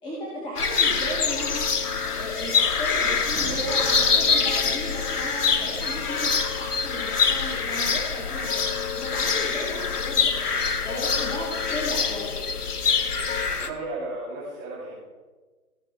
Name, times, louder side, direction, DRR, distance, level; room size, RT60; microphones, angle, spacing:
voice 1, 0.0-8.6 8.9-10.3 10.8-12.4, equal, 10° left, -7 dB, 2.3 m, -35 dB
sound 1, 0.6-13.7, left 5 dB, 85° left, 1.2 m, -25 dB
sound 2, 1.0-13.5, left 11 dB, 60° left, 0.8 m, -38 dB
sound 3, 3.3-5.4, right 4 dB, 75° right, 1.5 m, -41 dB
voice 2, 13.5-15.0, right 2 dB, 30° right, -7 dB, 3.0 m, -34 dB
16.5 x 6.7 x 4.5 m, 1.3 s
hypercardioid pair, 140°, 45 cm